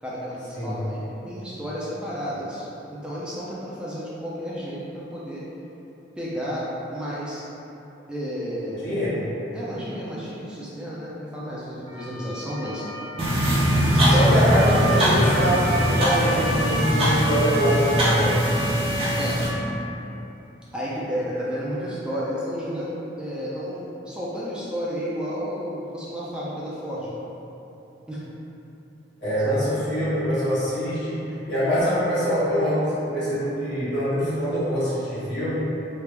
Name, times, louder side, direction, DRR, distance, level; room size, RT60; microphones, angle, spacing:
voice 1, 0.0-5.4 6.2-7.4 8.1-9.1 9.5-12.9 13.9-14.5 19.2-19.4 20.7-22.9 23.2-27.1 28.1-28.2 29.4-29.7, equal, 5° right, -8 dB, 0.3 m, -32 dB
voice 2, 8.8-9.2 14.0-18.5 29.2-35.6, equal, 65° left, -14 dB, 1.3 m, -24 dB
Motor vehicle (road) / Siren, 11.9-19.3, equal, 80° right, 0.6 m, -30 dB
sound 1, 13.2-19.5, equal, 30° right, 0.7 m, -21 dB
3.3 x 2.4 x 3.2 m, 3.0 s
head